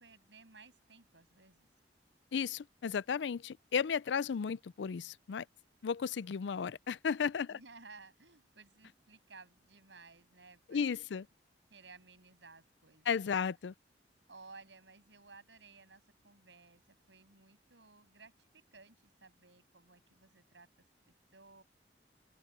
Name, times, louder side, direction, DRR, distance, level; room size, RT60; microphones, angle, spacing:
voice 1, 0.0-1.7 7.5-11.2 11.7-13.1 14.3-20.7 21.3-21.6, right 4 dB, 90° right, 7.8 m, -57 dB
voice 2, 2.3-5.5 5.8-7.6 10.7-11.2 13.1-13.7, left 6 dB, 85° left, 0.4 m, -34 dB
open air
head